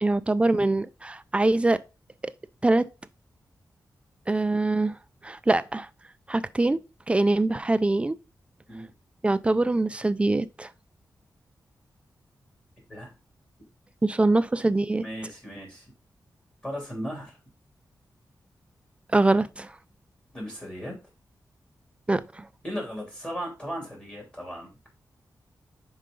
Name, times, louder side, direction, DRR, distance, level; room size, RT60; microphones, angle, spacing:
voice 1, 0.0-1.8 2.6-2.9 4.3-5.0 5.2-5.9 6.3-6.8 7.1-8.2 9.2-10.7 14.0-15.0 19.1-19.7 22.1-22.5, right 2 dB, 15° right, 0.3 m, -23 dB
voice 2, 15.0-15.9 16.6-17.4 20.3-21.0 22.6-24.7, equal, 15° left, 3.1 m, -36 dB
5.5 x 4.9 x 3.8 m
wide cardioid pair, 160°, 7 cm